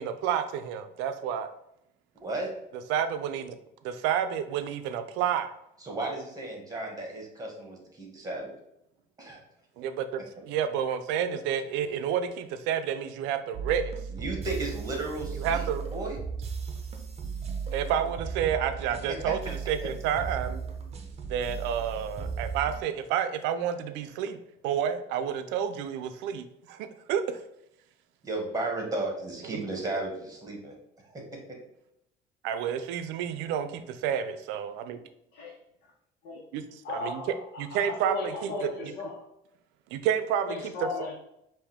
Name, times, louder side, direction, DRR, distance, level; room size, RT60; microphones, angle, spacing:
voice 1, 0.0-1.5 2.9-3.6 3.8-5.5 9.8-14.0 15.4-15.8 17.7-20.6 21.3-27.4 29.5-29.6 32.4-35.0 36.5-36.6 36.9-37.2 37.6-38.7 39.9-40.6, right 8 dB, 90° right, 9 dB, 0.5 m, -30 dB
voice 2, 2.2-2.5 5.8-8.5 9.2-9.4 14.1-16.2 19.1-19.3 28.2-30.7 31.0-31.6, right 2 dB, 20° right, 0 dB, 1.6 m, -34 dB
sound 1, 13.5-22.8, right 5 dB, 35° right, 0.8 m, -36 dB
voice 3, 36.8-39.2 40.5-41.1, left 3 dB, 80° left, -4 dB, 1.2 m, -36 dB
5.3 x 2.7 x 3.5 m, 0.79 s
cardioid pair, 115°, 18 cm